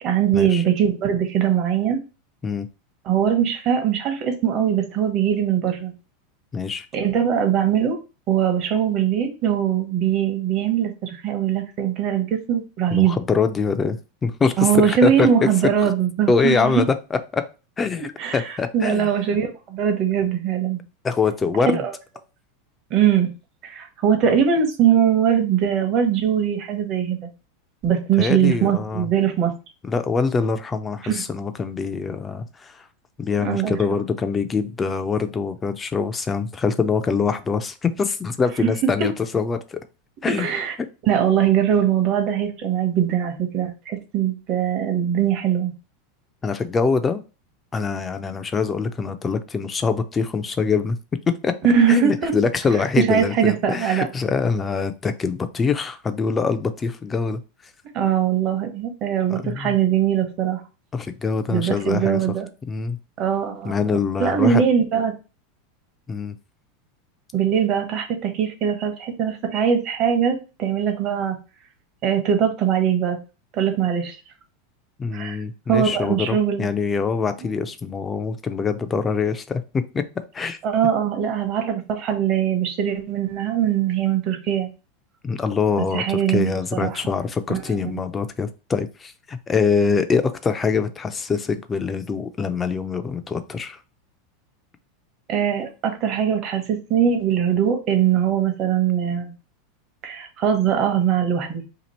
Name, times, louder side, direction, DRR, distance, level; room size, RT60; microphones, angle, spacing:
voice 1, 0.0-2.0 3.1-5.9 6.9-8.0 8.3-13.2 14.6-16.8 18.2-20.8 21.7-21.9 22.9-23.3 23.6-27.3 27.8-29.5 31.0-31.2 33.4-33.8 39.0-39.1 40.3-40.7 41.1-45.7 51.6-52.3 53.0-54.1 57.9-60.6 61.5-62.5 63.2-65.1 67.3-71.4 72.0-73.2 73.5-74.2 75.1-75.4 75.7-76.7 77.4-77.5 80.6-84.7 85.8-87.0 87.5-87.6 95.3-99.3 100.0-101.6, right 8 dB, 45° right, 5 dB, 0.9 m, -21 dB
voice 2, 6.5-6.9 12.9-15.3 15.8-15.9 16.3-17.4 17.8-19.1 21.0-21.8 28.2-29.1 29.8-32.8 33.2-39.8 40.2-40.5 46.4-47.2 47.7-51.0 51.4-51.5 51.9-57.4 59.3-59.8 60.9-62.2 62.7-63.0 63.6-64.6 66.1-66.3 75.0-80.6 85.2-93.8, left 5 dB, 20° left, 10 dB, 0.4 m, -24 dB
2.9 x 2.5 x 4.1 m, 0.31 s
supercardioid pair, 125°, 0 cm